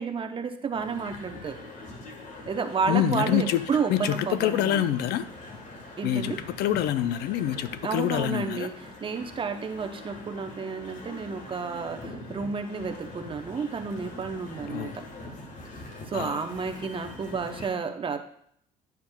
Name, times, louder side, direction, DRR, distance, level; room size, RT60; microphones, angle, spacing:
voice 1, 0.0-1.6 2.5-4.8 6.0-6.4 7.8-15.0 16.1-18.2, right 5 dB, 30° right, 7 dB, 0.7 m, -31 dB
sound 1, 0.7-17.7, left 2 dB, 45° left, 1.4 m, -43 dB
voice 2, 2.9-3.6 3.9-5.2 6.0-8.7 14.7-15.0 16.1-16.4, left 11 dB, 75° left, 13 dB, 0.5 m, -26 dB
9.4 x 7.1 x 2.3 m, 0.68 s
cardioid pair, 110°, 17 cm